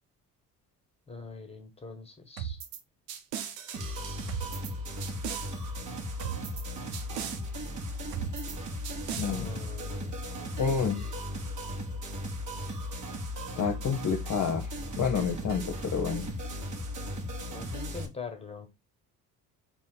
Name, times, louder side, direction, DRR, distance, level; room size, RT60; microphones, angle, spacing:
voice 1, 1.1-2.6 9.3-10.9 17.5-18.7, left 5 dB, 10° left, 6 dB, 1.5 m, -43 dB
sound 1, 2.4-2.8 3.1-4.7 5.0-5.5 6.2-6.6 6.9-7.4 8.1-8.6 8.8-9.3, right 9 dB, 85° right, 0.7 m, -37 dB
sound 2, 3.7-18.1, left 1 dB, 40° right, 1.7 m, -36 dB
voice 2, 9.2-9.6 10.6-11.0 13.6-14.7 15.0-16.3, left 6 dB, 40° left, 3 dB, 1.0 m, -29 dB
4.0 x 3.0 x 3.9 m, 0.22 s
hypercardioid pair, 50°, 47 cm